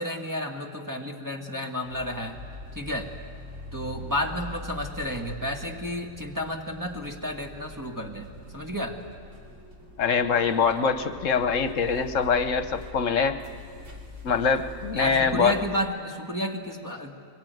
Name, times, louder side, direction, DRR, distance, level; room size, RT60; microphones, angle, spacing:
voice 1, 0.0-2.4 2.8-3.1 3.7-9.0 14.9-17.2, equal, 15° right, 1 dB, 1.7 m, -32 dB
sound 1, 1.8-15.7, left 2 dB, 65° right, 3.2 m, -43 dB
voice 2, 10.0-13.4 14.2-15.6, left 5 dB, 75° left, 10 dB, 1.2 m, -24 dB
23.5 x 20.0 x 9.3 m, 2.1 s
omnidirectional pair, 1.4 m